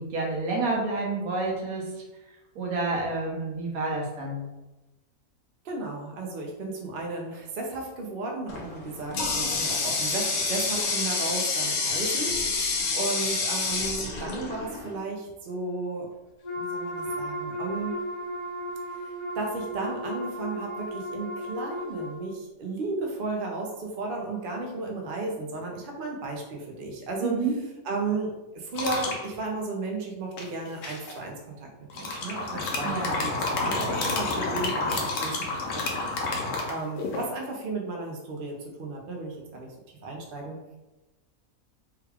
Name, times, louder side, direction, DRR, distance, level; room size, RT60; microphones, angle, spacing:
voice 1, 0.0-1.9 2.5-4.4 27.2-27.5 32.8-33.1, right 3 dB, 80° right, -2 dB, 1.3 m, -29 dB
voice 2, 5.6-12.3 12.9-16.1 16.5-17.9 19.4-27.3 27.9-35.6 35.9-36.1 36.3-39.7 40.0-40.6, right 3 dB, 50° right, 0 dB, 0.7 m, -34 dB
Water tap faucet, 8.5-15.0, left 4 dB, 85° left, 1.2 m, -28 dB
Wind instrument woodwind instrument, 16.4-22.2, equal, 50° left, 0.4 m, -35 dB
sound 1, 28.7-29.2 30.4-31.1 31.9-37.3, left 3 dB, 65° left, 1.0 m, -29 dB
3.5 x 2.2 x 3.4 m, 1.0 s
omnidirectional pair, 1.5 m